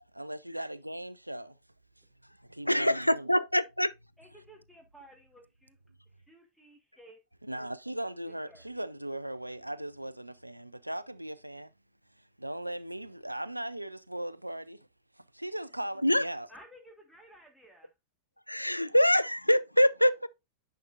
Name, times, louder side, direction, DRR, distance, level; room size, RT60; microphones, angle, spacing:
voice 1, 0.1-1.6 2.4-3.3 7.4-11.7 12.1-14.9 15.1-16.5, right 1 dB, 85° right, 0.4 m, -38 dB
voice 2, 2.7-3.9 16.0-16.2 18.5-20.3, equal, 90° left, 0.3 m, -24 dB
voice 3, 4.2-5.8 6.3-7.2 8.3-8.7 16.5-17.9, right 1 dB, ahead, 1.5 m, -55 dB
9.8 x 5.6 x 2.4 m
figure-of-eight pair, 90°, 0 cm